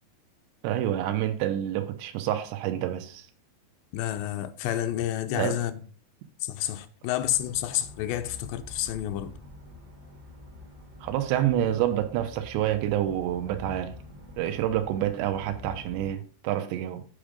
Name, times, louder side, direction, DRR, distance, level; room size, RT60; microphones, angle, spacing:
voice 1, 0.6-3.3 5.3-5.6 11.0-14.0 14.4-17.1, right 12 dB, 90° right, 2.9 m, -28 dB
voice 2, 3.9-5.8 6.4-9.3, left 12 dB, 80° left, 2.8 m, -29 dB
sound 1, 7.2-16.2, left 2 dB, 55° right, 1.1 m, -46 dB
8.9 x 5.1 x 5.0 m
omnidirectional pair, 5.1 m